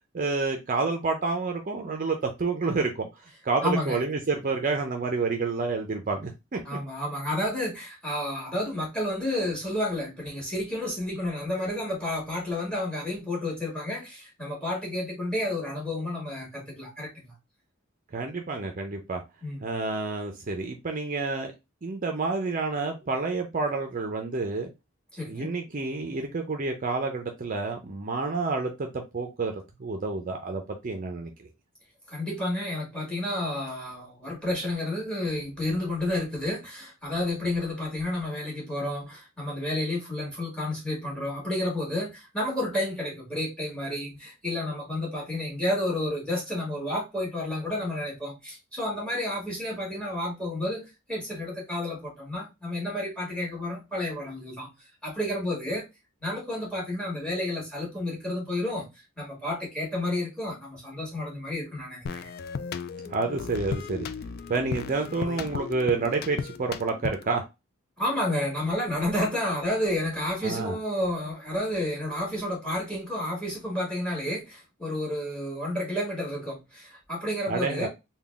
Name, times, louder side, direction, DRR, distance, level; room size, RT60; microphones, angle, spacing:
voice 1, 0.1-3.1 3.4-6.6 18.1-19.2 19.6-21.5 21.8-24.7 25.3-29.5 29.8-31.3 63.1-64.1 64.5-67.4 70.4-70.8 77.5-77.9, right 3 dB, 40° right, 0.5 m, -29 dB
voice 2, 3.6-4.0 6.7-17.3 19.4-19.8 25.1-25.5 32.1-54.7 55.0-55.8 56.2-58.9 59.2-62.3 68.0-77.9, left 1 dB, 5° left, 1.8 m, -31 dB
sound 1, 62.1-67.4, left 5 dB, 50° left, 0.3 m, -36 dB
3.8 x 2.3 x 3.4 m
head